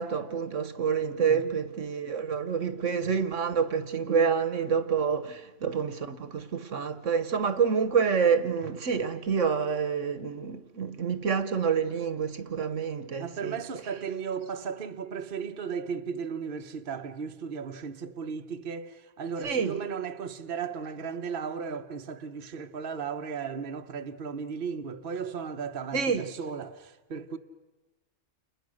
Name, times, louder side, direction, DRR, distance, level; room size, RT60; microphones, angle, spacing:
voice 1, 0.0-13.6 19.4-19.8 25.9-26.3, right 6 dB, 60° right, 1.4 m, -28 dB
voice 2, 1.1-1.5 4.1-4.3 13.2-27.4, right 6 dB, 45° right, 1.1 m, -35 dB
30.0 x 29.5 x 6.5 m
omnidirectional pair, 1.5 m